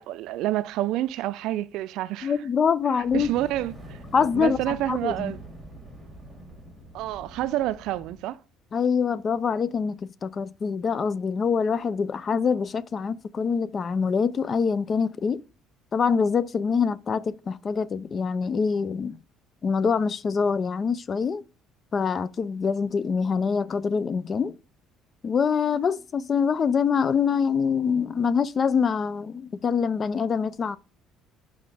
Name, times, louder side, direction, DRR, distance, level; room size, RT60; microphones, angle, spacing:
voice 1, 0.0-2.3 3.1-4.0 4.3-5.4 6.9-8.4, right 14 dB, 70° right, 0.4 m, -28 dB
voice 2, 2.2-3.3 4.1-5.3 8.7-15.4 15.9-19.2 19.6-21.4 21.9-24.5 25.2-30.8, left 6 dB, 30° left, 0.3 m, -25 dB
Fire, 3.0-8.3, equal, ahead, 2.1 m, -44 dB
5.6 x 5.0 x 3.4 m
cardioid pair, 135°, 0 cm